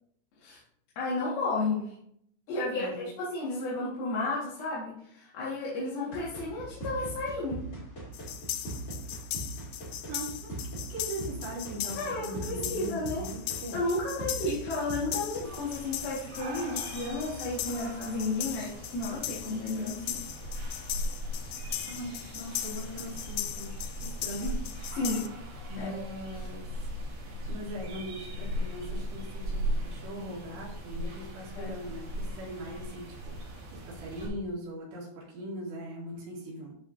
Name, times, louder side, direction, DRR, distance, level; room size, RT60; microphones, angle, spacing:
voice 1, 1.0-1.9 2.5-7.7 12.0-13.2 13.7-20.2 25.0-25.3 25.8-26.0 26.3-26.5 31.6-31.7, left 2 dB, 65° left, -6 dB, 3.6 m, -32 dB
voice 2, 2.7-3.1 10.1-10.6 10.9-13.8 21.9-25.0 25.7-26.9 27.5-36.7, equal, 85° right, -5 dB, 5.1 m, -40 dB
sound 1, 6.1-15.4, right 2 dB, 20° left, 2.3 m, -41 dB
sound 2, 8.1-25.3, left 12 dB, 80° left, 2.2 m, -39 dB
sound 3, 15.4-34.3, equal, 70° right, 4.7 m, -38 dB
14.0 x 5.7 x 2.8 m, 0.71 s
omnidirectional pair, 4.8 m